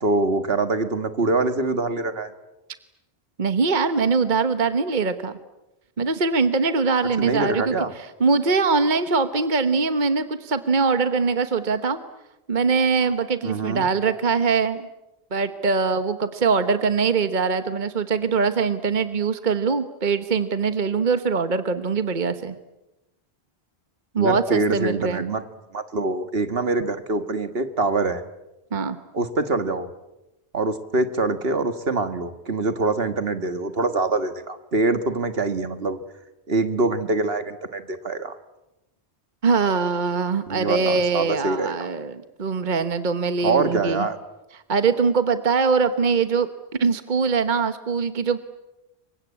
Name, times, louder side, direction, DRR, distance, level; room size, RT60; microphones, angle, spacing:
voice 1, 0.0-2.3 7.2-7.9 13.4-13.9 24.2-25.4 25.7-28.2 29.1-29.9 30.5-36.0 36.5-38.4 40.5-41.7 43.4-44.2, right 3 dB, 65° right, 10 dB, 1.9 m, -24 dB
voice 2, 3.4-5.3 6.0-7.8 8.2-12.0 12.5-14.9 15.3-22.5 24.1-25.2 28.7-29.0 39.4-44.1 44.7-46.5 46.8-48.4, right 4 dB, 50° right, 10 dB, 1.3 m, -22 dB
29.0 x 24.0 x 8.5 m, 0.95 s
omnidirectional pair, 1.1 m